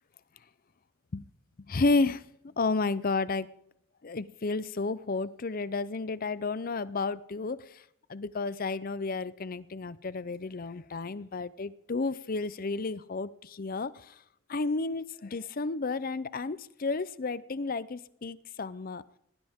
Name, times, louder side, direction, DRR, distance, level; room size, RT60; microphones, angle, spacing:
voice 1, 1.7-2.2 2.6-3.5 4.0-7.8 8.1-14.1 14.5-19.0, left 3 dB, 40° left, 17 dB, 0.5 m, -32 dB
19.0 x 18.5 x 3.6 m, 0.73 s
head